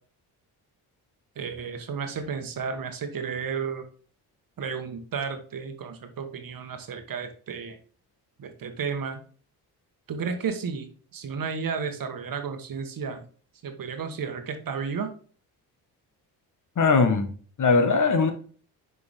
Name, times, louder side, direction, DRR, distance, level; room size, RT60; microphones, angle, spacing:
voice 1, 1.3-3.9 4.6-7.8 8.4-9.2 10.1-13.2 13.6-15.1, right 6 dB, 50° right, 7 dB, 1.3 m, -32 dB
voice 2, 16.8-17.3 17.6-18.3, left 4 dB, 45° left, 8 dB, 1.3 m, -20 dB
6.4 x 4.7 x 3.5 m, 0.41 s
cardioid pair, 75°, 42 cm